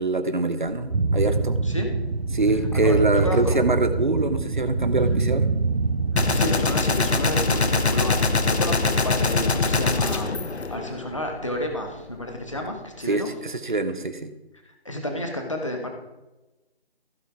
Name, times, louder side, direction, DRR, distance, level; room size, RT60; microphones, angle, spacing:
voice 1, 0.0-1.6 2.3-5.5 13.1-14.2, right 2 dB, 50° right, 9 dB, 1.0 m, -24 dB
sound 1, 0.6-14.1, equal, 15° right, 1.5 m, -47 dB
sound 2, 0.9-6.5, right 3 dB, 80° right, 1.1 m, -24 dB
voice 2, 2.7-3.6 6.3-13.3 14.6-15.9, left 1 dB, 30° left, 3 dB, 1.3 m, -31 dB
Gunshot gunfire, 6.2-11.4, left 3 dB, 80° left, 1.1 m, -23 dB
15.5 x 5.5 x 4.7 m, 1.0 s
figure-of-eight pair, 180°, 32 cm